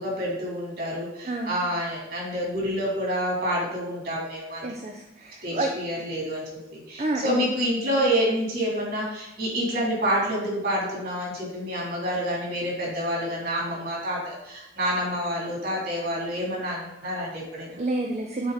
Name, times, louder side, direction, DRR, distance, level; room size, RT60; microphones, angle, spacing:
voice 1, 0.0-4.7 5.4-6.4 6.7-17.8, equal, 55° right, -3 dB, 3.0 m, -28 dB
voice 2, 1.2-1.5 4.6-5.7 7.0-7.5 17.8-18.5, right 2 dB, 35° right, 2 dB, 0.5 m, -29 dB
9.6 x 4.5 x 4.0 m, 0.87 s
head